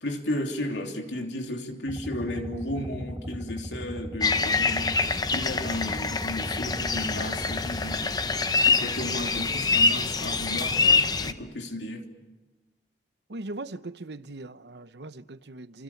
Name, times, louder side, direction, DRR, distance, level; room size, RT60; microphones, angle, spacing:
voice 1, 0.0-12.0, left 1 dB, 85° left, 3.1 m, -34 dB
sound 1, 1.8-8.0, equal, 15° right, 1.7 m, -38 dB
sound 2, 4.2-11.3, left 4 dB, 20° left, 0.8 m, -25 dB
voice 2, 13.3-15.8, right 2 dB, 75° right, 0.9 m, -39 dB
27.5 x 27.0 x 7.2 m
head